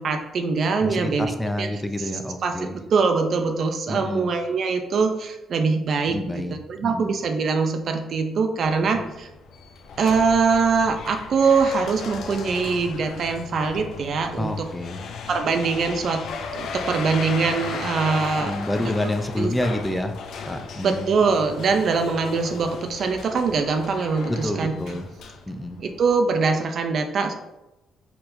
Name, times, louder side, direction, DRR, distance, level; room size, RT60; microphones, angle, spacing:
voice 1, 0.0-1.3 1.6-1.7 2.0-2.1 2.4-6.4 6.7-9.3 10.0-14.7 15.3-16.2 16.5-18.6 19.0-19.1 19.4-19.5 20.8-24.7 25.8-27.3, right 4 dB, 60° right, 6 dB, 0.5 m, -23 dB
voice 2, 0.8-2.8 3.9-4.3 6.1-6.6 6.8-7.1 8.9-9.0 14.4-15.0 18.4-20.1 20.4-21.2 24.3-25.1 25.5-25.8, left 1 dB, 10° left, 6 dB, 0.5 m, -28 dB
sound 1, 8.6-26.1, left 5 dB, 75° left, 0.5 m, -36 dB
4.5 x 4.1 x 2.6 m, 0.95 s
cardioid pair, 90°, 0 cm